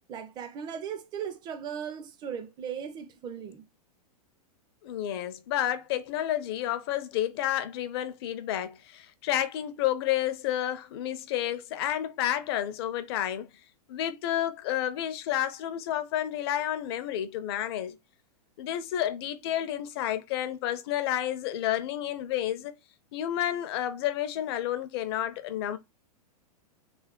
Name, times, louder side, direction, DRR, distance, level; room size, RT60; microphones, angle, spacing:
voice 1, 0.1-3.6, right 8 dB, 20° right, 0.5 m, -37 dB
voice 2, 4.8-13.5 13.9-18.0 18.6-22.7 23.1-25.8, left 12 dB, 40° left, 0.5 m, -30 dB
3.3 x 2.2 x 3.6 m
figure-of-eight pair, 105°, 20 cm